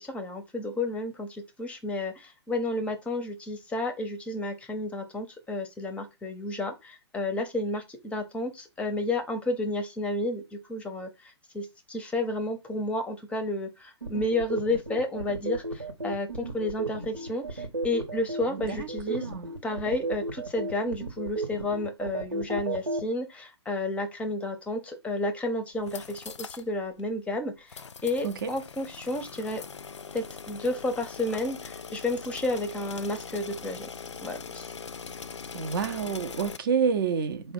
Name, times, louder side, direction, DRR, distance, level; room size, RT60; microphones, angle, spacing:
voice 1, 0.0-19.3 19.6-29.6 30.1-33.9 34.2-34.7, left 2 dB, 10° left, 0.6 m, -31 dB
sound 1, 14.0-23.0, right 2 dB, 85° right, 1.0 m, -33 dB
voice 2, 18.7-19.5 28.2-28.5 35.5-37.5, right 6 dB, 50° right, 0.5 m, -29 dB
sound 2, 25.7-26.7 27.0-27.1 27.7-36.6, left 6 dB, 80° left, 0.4 m, -41 dB
4.0 x 2.1 x 4.5 m
figure-of-eight pair, 120°, 15 cm